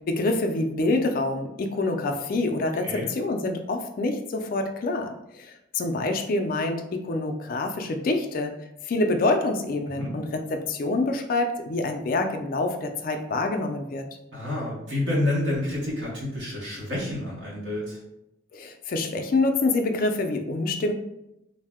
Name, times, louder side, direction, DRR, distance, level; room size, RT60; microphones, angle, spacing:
voice 1, 0.1-8.5 8.8-14.1 18.5-20.9, left 2 dB, 45° left, 5 dB, 0.3 m, -26 dB
voice 2, 2.8-3.1 9.9-10.1 14.3-18.0, left 1 dB, 65° right, -4 dB, 1.0 m, -29 dB
2.7 x 2.0 x 3.4 m, 0.86 s
head